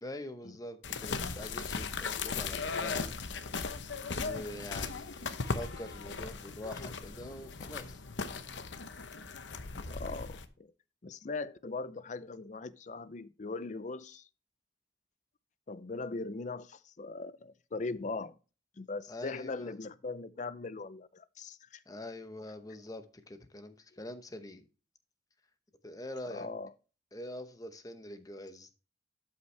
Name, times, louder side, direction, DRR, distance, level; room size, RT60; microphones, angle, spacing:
voice 1, 0.0-3.1 4.1-8.0 19.1-19.7 21.9-24.6 25.8-26.5 27.1-28.7, left 1 dB, 20° left, 0.9 m, -44 dB
sound 1, 0.8-10.5, left 4 dB, 85° left, 0.8 m, -38 dB
voice 2, 9.8-10.7 11.0-14.3 15.7-18.4 18.8-21.8 26.3-26.7, left 3 dB, 40° left, 0.5 m, -40 dB
12.5 x 5.7 x 3.3 m
head